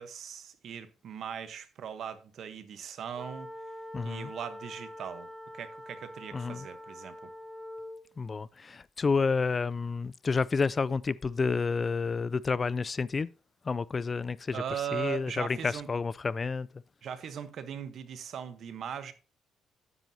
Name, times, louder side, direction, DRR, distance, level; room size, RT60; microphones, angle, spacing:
voice 1, 0.0-3.5 4.0-7.3 14.5-15.9 17.0-19.1, right 8 dB, 65° right, 1.0 m, -39 dB
sound 1, 3.1-8.1, left 1 dB, ahead, 1.2 m, -44 dB
voice 2, 3.9-4.3 6.3-6.7 8.2-13.3 13.6-14.6 14.9-16.7, left 4 dB, 35° left, 0.3 m, -30 dB
9.7 x 9.1 x 2.8 m
cardioid pair, 90°, 0 cm